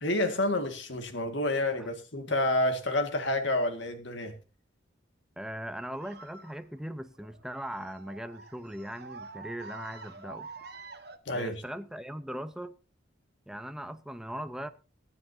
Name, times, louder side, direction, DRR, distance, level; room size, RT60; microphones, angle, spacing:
voice 1, 0.0-4.3 11.3-11.6, left 1 dB, 70° left, 1.9 m, -29 dB
voice 2, 5.4-10.5 11.3-12.8 13.5-14.7, equal, 5° right, 0.8 m, -39 dB
sound 1, 5.9-11.2, right 4 dB, 55° right, 1.5 m, -47 dB
23.5 x 9.9 x 2.8 m
head